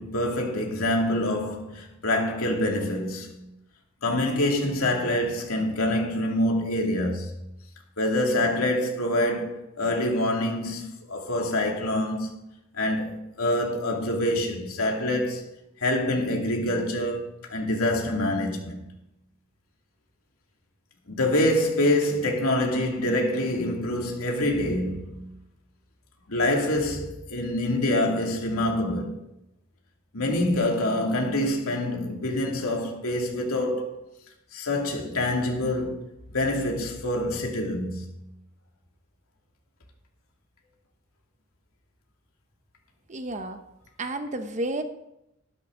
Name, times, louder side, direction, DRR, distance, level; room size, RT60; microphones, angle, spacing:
voice 1, 0.0-3.5 4.0-7.4 8.0-12.3 12.7-15.4 15.8-18.8 21.1-25.3 26.3-29.2 30.1-33.8 34.5-38.2, left 1 dB, 85° left, 2.6 m, -26 dB
voice 2, 43.1-43.6 44.0-44.8, right 2 dB, 35° right, 0.9 m, -31 dB
13.0 x 12.0 x 3.9 m
head